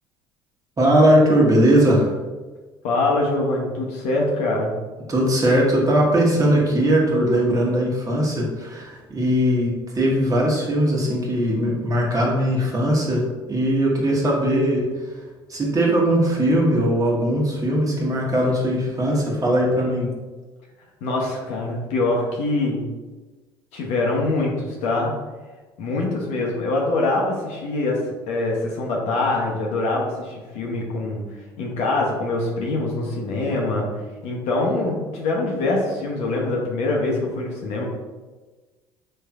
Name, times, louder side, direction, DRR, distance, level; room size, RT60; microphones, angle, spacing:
voice 1, 0.8-2.1 5.1-14.8 15.5-20.1, right 1 dB, 30° right, -3 dB, 1.2 m, -19 dB
voice 2, 2.8-4.7 21.0-22.8 23.7-25.1 25.8-28.0 28.3-31.2 31.6-33.9 34.2-37.8, left 2 dB, 70° left, -2 dB, 0.8 m, -24 dB
4.3 x 3.3 x 2.4 m, 1.3 s
hypercardioid pair, 70°, 12 cm